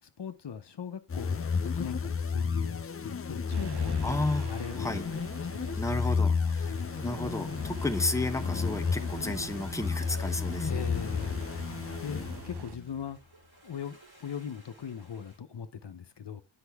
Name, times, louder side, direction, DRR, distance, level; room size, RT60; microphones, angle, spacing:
voice 1, 0.0-5.1 5.5-5.8 6.6-7.0 10.6-13.2 13.6-16.4, left 7 dB, 60° left, 0.8 m, -40 dB
sound 1, 1.1-12.8, left 5 dB, 30° left, 0.5 m, -32 dB
sound 2, 3.5-12.8, right 9 dB, 60° right, 0.6 m, -46 dB
voice 2, 4.0-4.5 4.8-5.0 5.8-10.7, left 2 dB, 5° left, 0.9 m, -32 dB
sound 3, 6.7-15.4, right 1 dB, 80° right, 4.1 m, -60 dB
8.0 x 5.7 x 3.5 m
wide cardioid pair, 60°, 46 cm